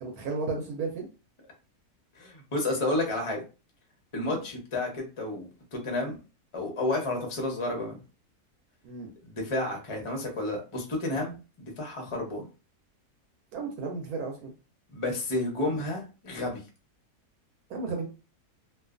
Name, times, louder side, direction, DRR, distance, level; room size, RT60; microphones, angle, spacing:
voice 1, 0.0-1.1 4.2-4.4 8.8-9.1 13.5-14.5 17.7-18.1, right 4 dB, 75° right, 1 dB, 1.1 m, -33 dB
voice 2, 2.2-3.4 4.1-6.2 6.5-8.0 9.2-12.5 14.9-16.6, left 2 dB, 40° left, 1 dB, 0.4 m, -31 dB
2.5 x 2.3 x 2.4 m, 0.32 s
omnidirectional pair, 1.7 m